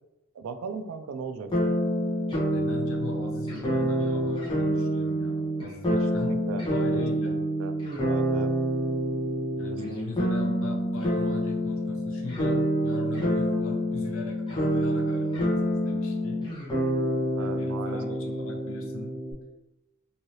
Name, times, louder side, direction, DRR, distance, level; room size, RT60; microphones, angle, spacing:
voice 1, 0.3-1.5 5.9-6.6 6.9-7.7 8.0-8.5 9.7-10.1 17.4-18.2, right 5 dB, 70° right, 9 dB, 0.3 m, -37 dB
sound 1, 1.5-19.3, equal, 25° left, 0.8 m, -27 dB
voice 2, 2.5-6.4 6.7-7.3 9.6-16.4 17.4-19.2, left 3 dB, 70° left, 0 dB, 0.6 m, -39 dB
3.1 x 2.7 x 2.7 m, 0.98 s
head